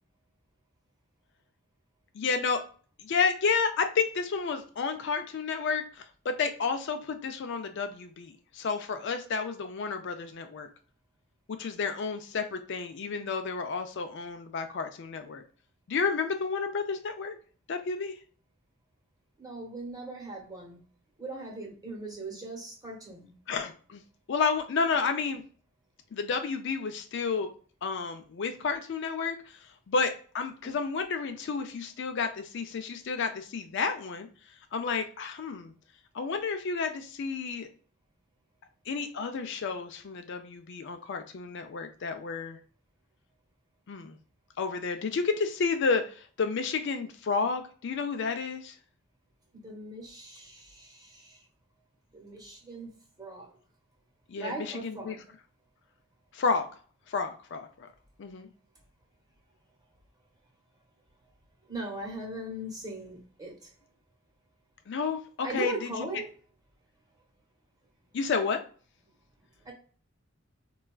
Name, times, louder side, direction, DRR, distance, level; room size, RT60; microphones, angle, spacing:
voice 1, 2.1-2.6 3.0-10.7 11.5-15.4 15.9-17.4 17.7-18.2 23.5-24.0 24.3-25.4 26.1-27.5 27.8-34.3 34.7-35.7 36.1-37.7 38.9-42.6 43.9-44.2 44.6-48.7 54.3-55.2 56.3-56.7 57.1-57.9 58.2-58.5 64.9-66.1 68.1-68.6, left 5 dB, 60° left, 6 dB, 0.4 m, -31 dB
voice 2, 19.4-20.8 21.2-23.3 30.6-30.8 49.5-51.4 52.1-52.9 53.2-53.5 54.3-55.2 61.7-63.7 65.4-66.3 69.6-69.7, right 2 dB, 20° right, -2 dB, 1.1 m, -39 dB
4.0 x 2.3 x 2.3 m, 0.42 s
head